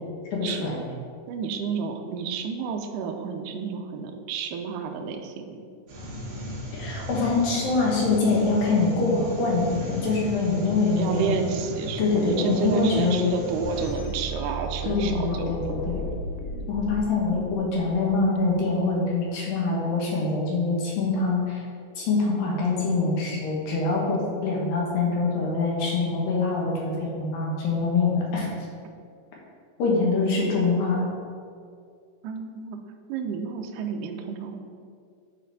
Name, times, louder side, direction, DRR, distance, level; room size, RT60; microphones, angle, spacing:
voice 1, 0.3-0.8 6.7-11.4 12.0-13.3 14.8-16.0 16.7-21.6 22.0-28.5 29.8-31.0, left 3 dB, 70° left, -3 dB, 3.0 m, -24 dB
voice 2, 1.3-5.6 11.0-15.9 32.2-32.8 33.1-34.6, right 6 dB, 85° right, 4 dB, 2.0 m, -31 dB
sound 1, 5.9-13.9, left 1 dB, 60° right, 3.2 m, -36 dB
sound 2, 13.6-18.5, equal, 90° left, 1.8 m, -35 dB
10.5 x 4.1 x 4.1 m, 2.3 s
omnidirectional pair, 4.3 m